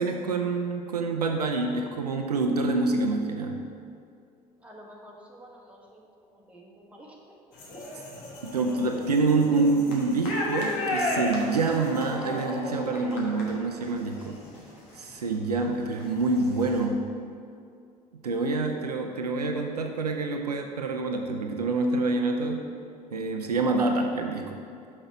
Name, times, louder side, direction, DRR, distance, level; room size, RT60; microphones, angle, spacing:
voice 1, 0.0-3.6 8.5-14.4 15.0-17.1 18.2-22.6 23.1-24.6, right 3 dB, 80° right, 4 dB, 0.5 m, -26 dB
voice 2, 4.6-7.8 24.0-24.5, equal, 5° right, -2 dB, 1.3 m, -50 dB
sound 1, 7.5-15.3 15.7-16.8, left 1 dB, 60° left, 1.5 m, -34 dB
5.8 x 5.4 x 5.5 m, 2.4 s
figure-of-eight pair, 65°, 20 cm